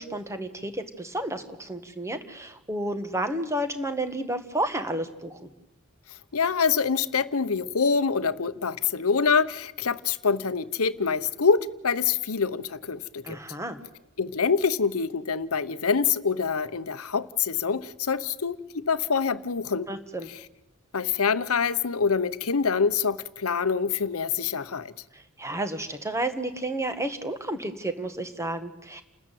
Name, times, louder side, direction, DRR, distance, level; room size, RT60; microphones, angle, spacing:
voice 1, 0.0-5.4 13.2-13.8 19.9-20.3 25.1-29.0, right 1 dB, 15° right, 1.8 m, -31 dB
voice 2, 6.3-13.4 14.2-19.9 20.3-20.4 20.9-24.9, left 5 dB, 90° left, 0.9 m, -25 dB
29.5 x 13.5 x 9.3 m
head